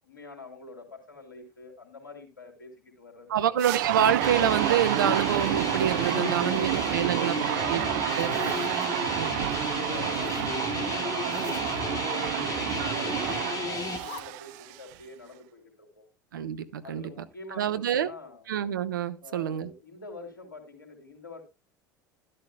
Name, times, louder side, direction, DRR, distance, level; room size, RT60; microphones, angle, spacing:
voice 1, 0.0-3.5 6.1-8.0 8.5-9.3 9.7-16.0 16.8-18.4 19.2-21.4, left 3 dB, 85° left, 3.3 m, -46 dB
voice 2, 3.3-7.3 7.7-8.4 9.1-9.3 16.3-17.1 17.5-18.1 18.5-19.7, right 9 dB, 75° right, 0.9 m, -27 dB
sound 1, 3.6-14.9, right 19 dB, 60° right, 0.5 m, -30 dB
sound 2, 4.2-14.0, left 4 dB, 35° left, 2.3 m, -33 dB
Zipper (clothing), 6.3-7.3 7.8-8.9 10.1-10.5 11.2-11.8 13.1-13.4 13.8-14.2, left 6 dB, 60° left, 2.3 m, -45 dB
12.5 x 12.0 x 2.2 m
figure-of-eight pair, 70°, 11 cm